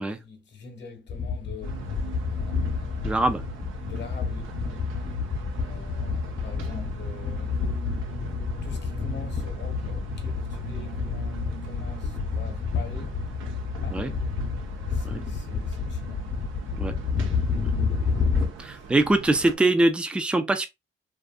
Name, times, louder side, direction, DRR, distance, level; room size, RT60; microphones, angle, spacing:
voice 1, 0.0-2.0 2.3-3.5 3.8-5.1 5.5-7.6 8.6-13.2 13.8-14.4 14.9-16.3 18.6-19.0, left 5 dB, 60° left, 0.9 m, -44 dB
sound 1, 1.1-18.5, left 5 dB, 40° left, 0.7 m, -29 dB
sound 2, 1.6-19.6, right 6 dB, 80° right, 0.6 m, -42 dB
voice 2, 3.0-3.4 13.9-14.1 15.1-15.2 16.8-16.9 18.6-20.7, right 2 dB, 5° right, 0.4 m, -23 dB
2.6 x 2.4 x 2.2 m
cardioid pair, 90°, 20 cm